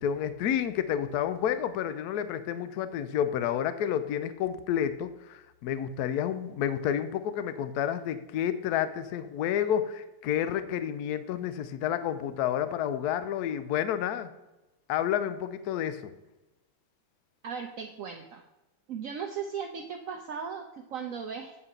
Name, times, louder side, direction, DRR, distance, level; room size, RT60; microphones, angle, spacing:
voice 1, 0.0-14.3 14.9-16.1, left 9 dB, 70° left, 12 dB, 1.0 m, -30 dB
voice 2, 17.4-18.4 18.9-21.6, right 6 dB, 70° right, 3 dB, 0.7 m, -37 dB
8.2 x 4.9 x 6.6 m, 1.0 s
omnidirectional pair, 2.2 m